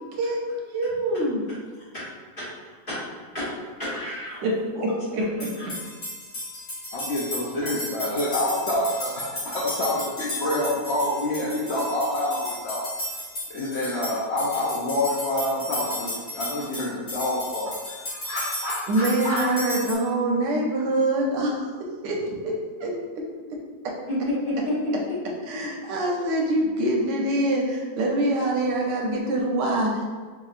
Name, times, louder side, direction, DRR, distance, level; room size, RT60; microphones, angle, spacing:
voice 1, 0.7-1.4 4.4-4.5 5.1-5.5 18.9-21.6 22.0-22.2 22.4-22.5 22.8-22.9 25.5-30.1, right 1 dB, 80° right, -1 dB, 1.3 m, -24 dB
voice 2, 3.8-4.5 4.7-4.8 5.6-5.7 24.1-24.9, left 1 dB, 30° left, -11 dB, 1.7 m, -29 dB
sound 1, 5.4-19.9, left 1 dB, 50° left, 1.6 m, -34 dB
voice 3, 6.9-12.8 13.5-19.4, left 1 dB, 90° left, -6 dB, 0.5 m, -27 dB
4.5 x 2.9 x 2.4 m, 1.5 s
omnidirectional pair, 1.9 m